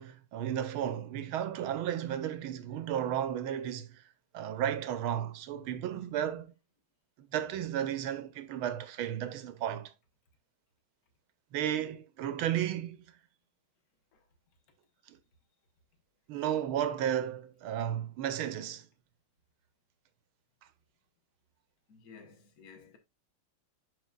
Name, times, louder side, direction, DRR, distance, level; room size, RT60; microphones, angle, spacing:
voice 1, 0.0-4.0 4.3-6.5 7.2-9.9 11.5-13.0 15.1-15.2 16.3-18.9, right 10 dB, 80° right, 1.7 m, -33 dB
voice 2, 21.9-23.0, left 5 dB, 45° left, 1.7 m, -54 dB
11.0 x 4.3 x 2.3 m
omnidirectional pair, 2.3 m